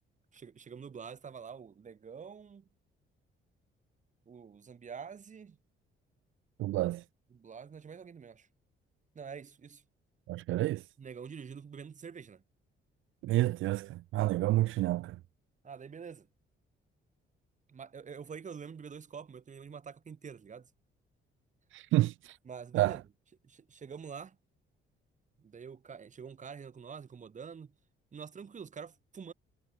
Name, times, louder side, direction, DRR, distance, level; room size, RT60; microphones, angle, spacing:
voice 1, 0.3-2.7 4.3-5.6 7.3-8.5 9.1-9.8 11.0-12.4 15.6-16.3 17.7-20.7 22.4-23.0 23.4-24.4 25.4-27.7 28.1-29.3, right 6 dB, 40° right, 2.9 m, -46 dB
voice 2, 6.6-7.0 10.3-10.8 13.2-15.2 21.7-22.4 22.7-23.0, right 16 dB, 75° right, 0.4 m, -29 dB
cardioid pair, 125°, 20 cm